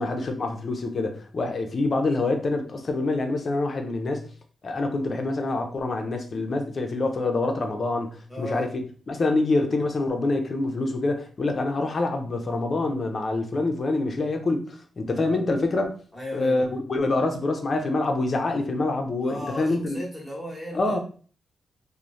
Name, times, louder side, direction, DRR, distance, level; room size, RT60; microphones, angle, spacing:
voice 1, 0.0-4.2 4.6-8.7 9.1-16.0 16.3-20.0 20.7-21.0, left 2 dB, 40° left, 0.4 m, -26 dB
voice 2, 8.3-8.7 16.1-16.8 19.2-21.0, left 1 dB, 5° left, 0.9 m, -36 dB
3.0 x 2.0 x 2.5 m
wide cardioid pair, 125°, 0 cm